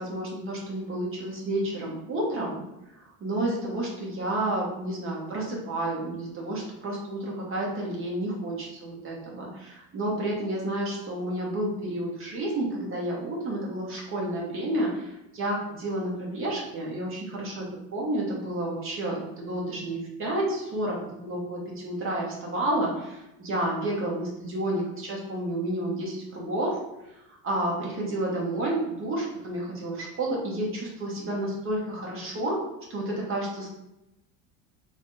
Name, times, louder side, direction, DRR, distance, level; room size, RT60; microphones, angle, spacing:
voice 1, 0.0-2.6 3.2-17.7 17.9-26.8 27.3-32.6 32.9-33.8, right 1 dB, 25° right, -3 dB, 0.8 m, -30 dB
3.4 x 2.2 x 4.0 m, 0.90 s
cardioid pair, 165°, 49 cm